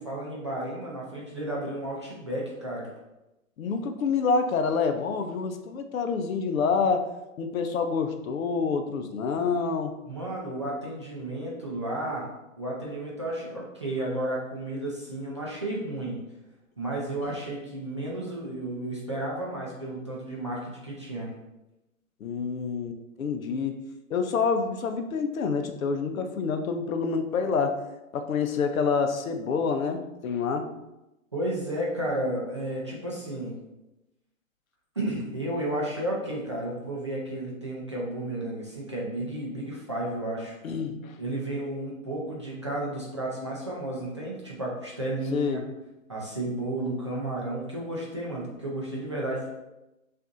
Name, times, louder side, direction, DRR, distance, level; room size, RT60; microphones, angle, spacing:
voice 1, 0.0-2.9 10.0-12.3 12.6-16.2 16.8-21.3 31.3-33.5 35.0-40.6 41.2-45.6 46.1-49.5, right 1 dB, 25° right, -5 dB, 0.4 m, -32 dB
voice 2, 3.6-7.1 7.4-9.9 22.2-23.8 24.1-27.8 28.1-30.7 40.6-41.2 45.3-45.6, left 5 dB, 75° left, 7 dB, 0.7 m, -27 dB
6.6 x 2.6 x 2.5 m, 0.96 s
hypercardioid pair, 160°, 41 cm